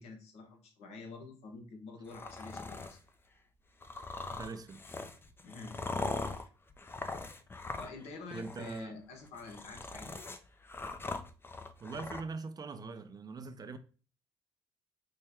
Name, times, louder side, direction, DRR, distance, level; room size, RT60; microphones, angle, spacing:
voice 1, 0.0-3.0 5.4-5.8 6.4-6.5 7.8-10.1, left 3 dB, 75° left, 1.1 m, -48 dB
sound 1, 2.1-3.0 3.8-8.1 8.3-8.8 9.2-12.2, left 3 dB, 20° left, 0.5 m, -41 dB
voice 2, 4.3-5.0 8.3-8.9 11.8-13.8, right 4 dB, 35° right, 0.5 m, -42 dB
4.4 x 2.2 x 3.4 m
supercardioid pair, 70°, 11 cm